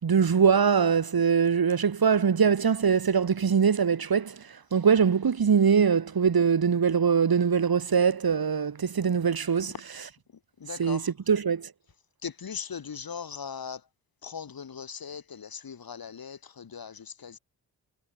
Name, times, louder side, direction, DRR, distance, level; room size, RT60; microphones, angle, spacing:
voice 1, 0.0-4.3 4.7-10.1 10.8-11.7, right 6 dB, 50° right, 3.2 m, -23 dB
voice 2, 10.6-11.0 12.2-13.8 14.2-17.4, left 6 dB, 50° left, 2.6 m, -39 dB
hypercardioid pair, 40°, 44 cm